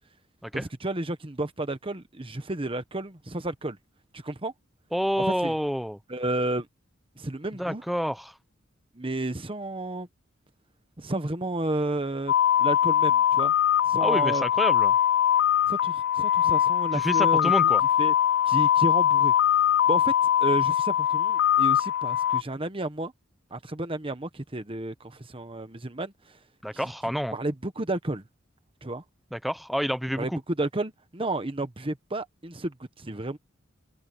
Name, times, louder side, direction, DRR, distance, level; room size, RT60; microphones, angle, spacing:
voice 1, 0.5-3.8 4.1-4.5 5.2-5.5 6.1-6.7 7.2-7.8 8.9-10.1 11.0-12.3 12.6-13.5 13.9-14.4 15.7-17.5 18.0-18.1 18.5-19.3 19.9-20.1 20.4-23.1 23.5-26.1 26.7-26.8 27.3-28.2 28.8-29.0 30.2-30.3 30.6-33.4, right 2 dB, 25° right, 1.2 m, -31 dB
voice 2, 4.9-6.0 7.6-8.3 14.0-14.9 16.9-17.8 26.6-27.4 29.3-30.4, equal, ahead, 1.0 m, -28 dB
sound 1, 12.3-22.4, left 10 dB, 65° left, 0.4 m, -22 dB
head